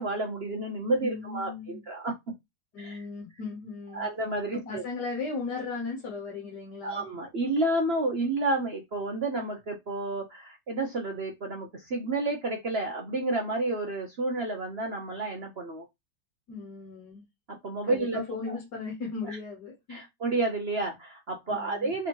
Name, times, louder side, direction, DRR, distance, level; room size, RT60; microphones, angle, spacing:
voice 1, 0.0-2.1 2.8-3.0 3.9-4.8 6.8-15.9 17.6-18.6 19.2-19.4 19.9-22.1, right 2 dB, 50° right, 0.7 m, -30 dB
voice 2, 0.9-1.8 2.7-4.1 4.5-7.0 16.5-17.2 17.8-20.1 21.5-21.9, left 4 dB, 65° left, 1.7 m, -37 dB
4.0 x 3.4 x 3.0 m
omnidirectional pair, 2.0 m